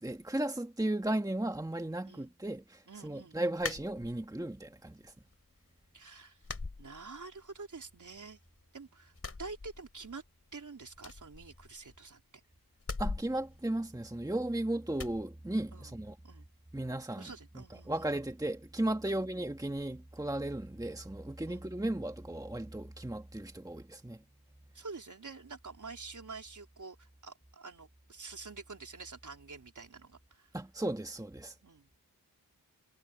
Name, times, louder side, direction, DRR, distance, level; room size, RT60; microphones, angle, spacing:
voice 1, 0.0-5.1 13.0-16.2 16.7-17.3 17.6-24.2 30.5-31.6, right 1 dB, 10° right, 1.6 m, -35 dB
voice 2, 2.9-3.5 5.9-6.4 6.8-8.4 8.7-10.2 10.5-12.2 15.7-15.9 16.2-16.5 17.2-18.1 19.1-19.2 21.5-21.7 24.7-30.5 31.6-31.9, right 4 dB, 50° right, 4.0 m, -48 dB
sound 1, 3.6-4.5 4.9-5.6 5.8-6.0 6.4-7.6 7.9-8.7 9.1-10.3 10.5-10.6 10.9-12.1 12.8-14.4 14.9-15.2, left 3 dB, 35° left, 4.5 m, -42 dB
wide cardioid pair, 100°, 38 cm